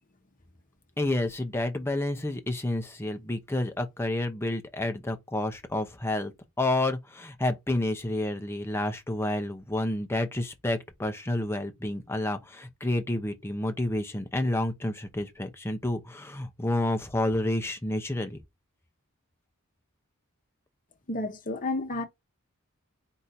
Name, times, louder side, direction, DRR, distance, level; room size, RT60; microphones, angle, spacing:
voice 1, 1.0-6.3 6.6-18.4, left 1 dB, 10° left, 0.7 m, -29 dB
voice 2, 21.1-22.0, left 2 dB, 35° left, 0.9 m, -31 dB
4.6 x 2.7 x 4.1 m
head